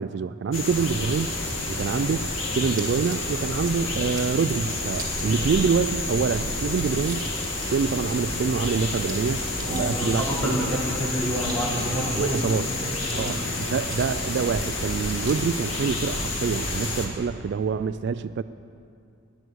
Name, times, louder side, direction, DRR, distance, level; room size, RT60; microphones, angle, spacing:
voice 1, 0.0-10.5 12.1-12.7 13.2-18.4, right 5 dB, 60° right, 13 dB, 0.3 m, -26 dB
sound 1, 0.5-17.1, left 2 dB, 85° left, 2.3 m, -29 dB
sound 2, 2.8-3.7 4.1-4.4 4.9-5.8 6.1-6.2 6.4-10.5 11.0-12.2 12.6-14.5 15.0-15.6, right 4 dB, 20° right, 2.3 m, -44 dB
voice 2, 9.6-12.5 13.1-13.5, equal, 5° left, -5 dB, 3.1 m, -28 dB
20.0 x 9.4 x 6.3 m, 2.5 s
head